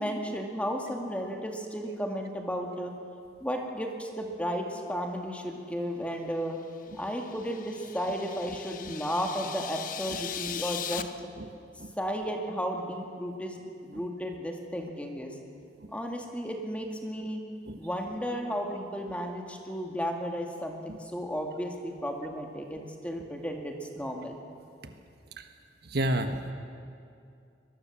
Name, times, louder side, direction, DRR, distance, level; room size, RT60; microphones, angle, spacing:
voice 1, 0.0-2.9 3.4-6.6 7.0-11.1 12.0-15.3 15.9-17.4 17.8-24.4, equal, 5° left, 2 dB, 2.2 m, -34 dB
sound 1, 6.9-11.0, left 9 dB, 45° left, 0.9 m, -39 dB
voice 2, 25.9-26.5, right 1 dB, 60° right, 6 dB, 1.4 m, -28 dB
23.5 x 21.0 x 7.4 m, 2.5 s
head